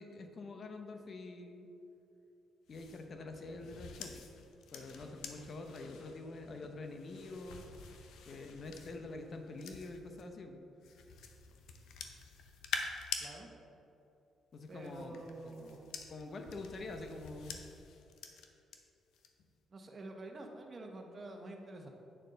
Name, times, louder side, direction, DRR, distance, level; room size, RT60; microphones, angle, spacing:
voice 1, 0.0-1.7 2.7-4.2 4.7-7.6 8.3-10.6 14.5-15.6 16.1-17.6, left 2 dB, 45° left, 5 dB, 0.8 m, -46 dB
sound 1, 2.7-10.2 10.8-13.3 14.5-18.8 19.1-19.5, left 6 dB, 80° left, 0.7 m, -47 dB
voice 2, 14.7-15.9 19.7-21.9, right 2 dB, 40° right, 2 dB, 1.1 m, -48 dB
9.0 x 6.5 x 3.9 m, 2.9 s
cardioid pair, 90°, 0 cm